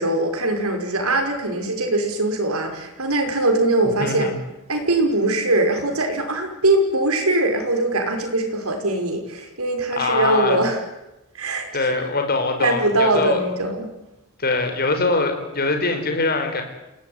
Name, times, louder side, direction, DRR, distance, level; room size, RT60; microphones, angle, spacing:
voice 1, 0.0-4.3 4.7-10.8 11.3-11.7 12.0-12.1 12.6-13.9, right 2 dB, 80° right, 4 dB, 5.6 m, -21 dB
voice 2, 4.0-4.3 10.0-10.6 11.7-13.4 14.4-16.6, left 3 dB, 45° left, 5 dB, 5.4 m, -22 dB
28.0 x 18.5 x 9.7 m, 0.96 s
head